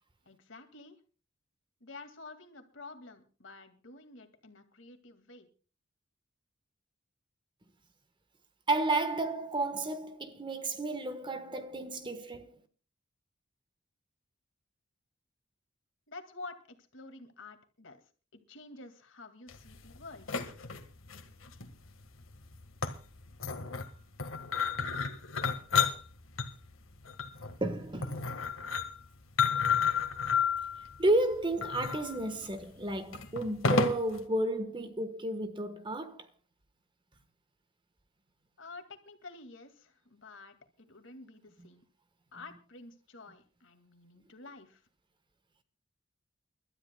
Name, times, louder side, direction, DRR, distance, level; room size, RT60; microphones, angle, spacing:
voice 1, 0.3-1.0 1.8-5.5 16.1-18.0 18.3-20.4 38.6-41.8 42.3-44.8, left 3 dB, 65° left, 2.2 m, -50 dB
voice 2, 8.7-12.6 27.6-28.3 31.0-36.3 41.6-41.7, right 2 dB, 25° right, 1.3 m, -32 dB
sound 1, 19.5-34.2, left 6 dB, 85° left, 1.6 m, -33 dB
29.5 x 13.0 x 2.3 m
head